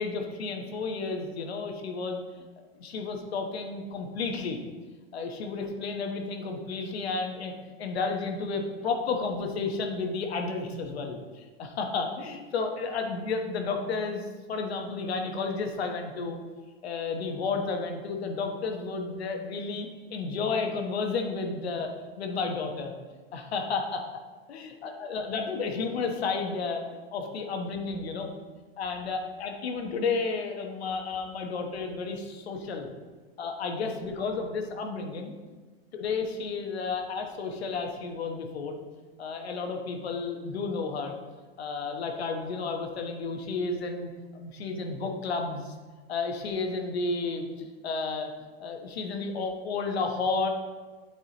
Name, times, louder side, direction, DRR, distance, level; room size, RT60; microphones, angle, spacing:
voice 1, 0.0-2.2 2.8-4.6 5.1-7.5 7.8-16.4 16.8-23.0 23.3-24.0 24.5-26.8 27.1-28.3 28.8-32.9 33.4-35.3 35.9-38.8 39.2-41.1 41.6-45.7 46.1-48.3 48.6-50.5, left 4 dB, 90° left, 4 dB, 1.1 m, -32 dB
9.4 x 4.9 x 2.9 m, 1.4 s
supercardioid pair, 160°, 31 cm